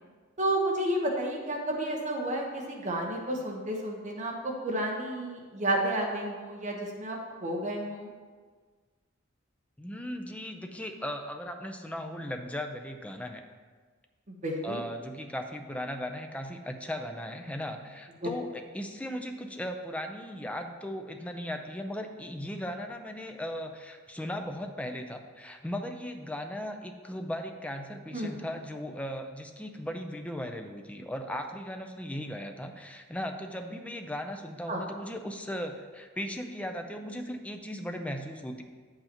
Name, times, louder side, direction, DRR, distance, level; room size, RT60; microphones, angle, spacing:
voice 1, 0.4-8.1 14.3-14.8 18.2-18.3 28.1-28.4 34.7-34.8, right 1 dB, 40° right, 0 dB, 1.1 m, -31 dB
voice 2, 9.8-13.4 14.6-38.6, equal, 5° left, 5 dB, 0.6 m, -37 dB
9.7 x 7.8 x 3.0 m, 1.5 s
head